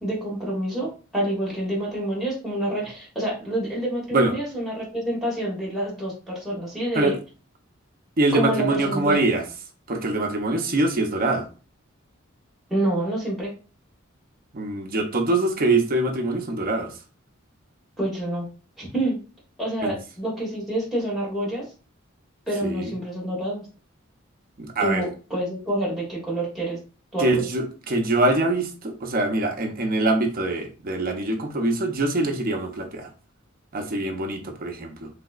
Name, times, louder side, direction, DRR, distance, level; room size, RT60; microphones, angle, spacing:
voice 1, 0.0-7.1 8.3-9.2 12.7-13.5 18.0-18.5 18.8-19.2 19.6-21.7 22.5-23.7 24.8-26.8 27.1-27.4, right 1 dB, ahead, 1.3 m, -27 dB
voice 2, 8.2-9.4 9.9-11.5 14.5-17.0 19.8-20.0 22.6-22.9 24.6-25.0 27.2-33.1 33.7-35.1, right 2 dB, 45° right, 0.6 m, -24 dB
3.3 x 2.9 x 2.4 m
head